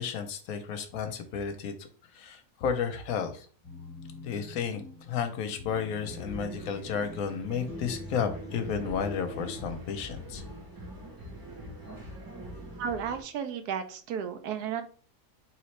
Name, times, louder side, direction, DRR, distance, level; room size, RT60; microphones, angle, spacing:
voice 1, 0.0-3.5 4.2-4.8 5.1-10.4, left 7 dB, 65° left, 8 dB, 1.0 m, -32 dB
sound 1, 3.6-9.6, left 2 dB, 10° left, 1.2 m, -45 dB
sound 2, 6.0-13.2, right 1 dB, 25° right, 0.4 m, -44 dB
voice 2, 12.8-14.8, right 7 dB, 75° right, 9 dB, 1.1 m, -33 dB
3.9 x 3.1 x 3.1 m, 0.41 s
omnidirectional pair, 1.8 m